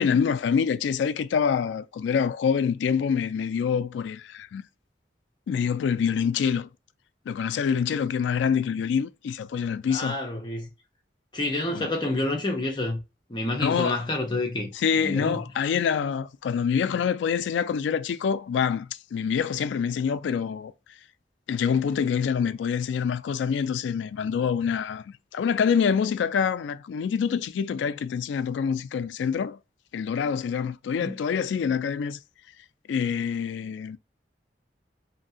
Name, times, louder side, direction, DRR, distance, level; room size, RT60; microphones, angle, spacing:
voice 1, 0.0-4.6 5.5-6.7 7.3-10.2 11.7-11.9 13.6-14.0 14.7-20.7 21.5-29.6 29.9-32.2 32.9-34.0, left 7 dB, 85° left, 0.3 m, -26 dB
voice 2, 9.9-10.7 11.3-13.0 13.3-14.7 15.0-15.4 31.0-31.2, left 2 dB, 25° left, 0.7 m, -28 dB
2.8 x 2.5 x 2.6 m
head